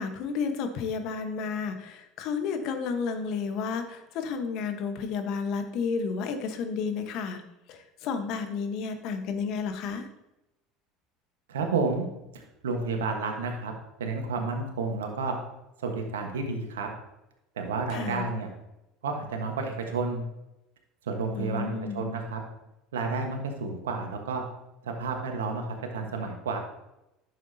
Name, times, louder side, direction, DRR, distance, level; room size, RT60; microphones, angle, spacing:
voice 1, 0.0-7.4 7.7-10.1 17.9-18.3 21.3-22.1, left 5 dB, 60° left, 7 dB, 1.2 m, -32 dB
voice 2, 11.5-12.1 12.3-13.7 14.0-15.3 15.8-16.9 17.6-18.5 19.0-20.3 21.0-22.4 22.9-24.4 24.8-26.6, right 4 dB, 90° right, 3 dB, 1.3 m, -31 dB
10.5 x 7.2 x 2.8 m, 0.90 s
hypercardioid pair, 80°, 0 cm